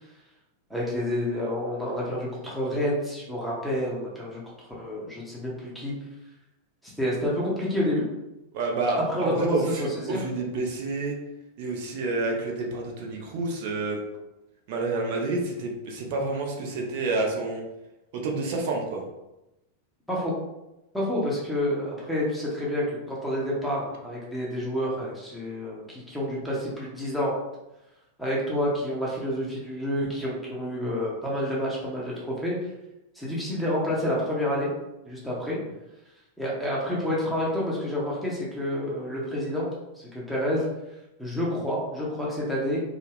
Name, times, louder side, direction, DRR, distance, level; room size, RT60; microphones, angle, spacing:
voice 1, 0.7-5.9 6.8-8.0 9.1-10.2 20.1-20.3 20.9-27.3 28.2-32.7 33.1-34.7 35.0-35.6 36.4-39.7 40.0-40.7 41.2-42.8, equal, ahead, -6 dB, 0.7 m, -29 dB
voice 2, 8.5-11.1 11.6-14.0 14.7-17.6 18.1-19.0, right 3 dB, 50° right, 0 dB, 0.6 m, -29 dB
2.3 x 2.2 x 3.3 m, 0.94 s
figure-of-eight pair, 90°, 0 cm